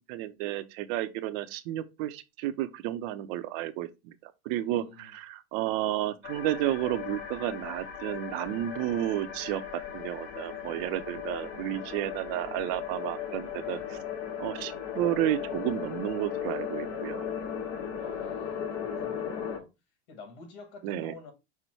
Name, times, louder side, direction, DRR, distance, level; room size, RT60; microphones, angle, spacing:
voice 1, 0.1-13.8 14.4-17.2 20.8-21.1, right 13 dB, 60° right, 0.7 m, -32 dB
voice 2, 4.7-5.1 13.6-13.9 18.0-19.7 20.1-21.3, left 4 dB, 65° left, 1.7 m, -48 dB
sound 1, 6.2-19.6, left 8 dB, 50° left, 1.1 m, -37 dB
5.6 x 2.2 x 4.4 m
supercardioid pair, 135°, 32 cm